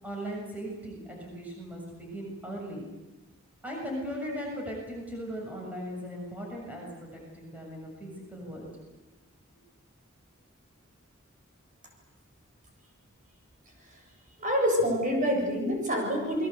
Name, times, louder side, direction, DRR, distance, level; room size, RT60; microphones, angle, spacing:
voice 1, 0.0-2.9 3.6-7.1 7.3-8.7, equal, 10° right, -1 dB, 6.9 m, -38 dB
voice 2, 14.4-16.5, equal, 40° right, 2 dB, 7.8 m, -27 dB
28.5 x 22.0 x 8.3 m, 1.0 s
head